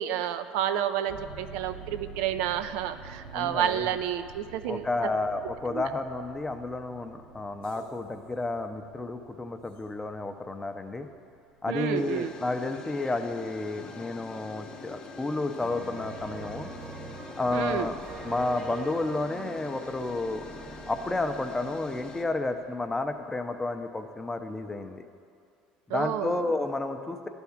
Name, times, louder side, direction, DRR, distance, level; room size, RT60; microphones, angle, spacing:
voice 1, 0.0-4.8 5.7-5.9 11.7-12.3 17.5-17.9 25.9-26.4, right 10 dB, 80° right, 10 dB, 0.4 m, -30 dB
sound 1, 1.1-13.4 13.9-14.3 14.9-15.0 15.3-15.4, right 4 dB, 60° right, 1.1 m, -49 dB
voice 2, 3.3-3.9 4.7-11.1 11.6-16.7 17.4-18.0 18.2-20.5 20.9-25.0 25.9-27.3, left 2 dB, 15° left, 7 dB, 0.6 m, -31 dB
Amtrak Hydraulics, 7.6-8.1 9.8-9.9 12.0-22.3, left 4 dB, 40° left, 0.8 m, -45 dB
sound 2, 15.6-23.2, right 4 dB, 35° right, 0.9 m, -44 dB
10.5 x 3.5 x 7.1 m, 2.4 s
supercardioid pair, 105°, 3 cm